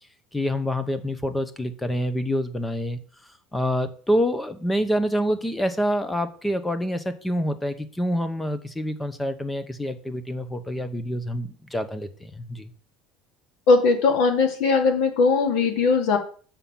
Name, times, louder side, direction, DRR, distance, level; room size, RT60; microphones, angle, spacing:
voice 1, 0.3-3.0 3.5-12.7, equal, 5° left, 11 dB, 0.8 m, -27 dB
voice 2, 13.7-16.2, left 4 dB, 60° left, 4 dB, 2.4 m, -19 dB
7.2 x 5.6 x 7.2 m, 0.42 s
cardioid pair, 175°, 0 cm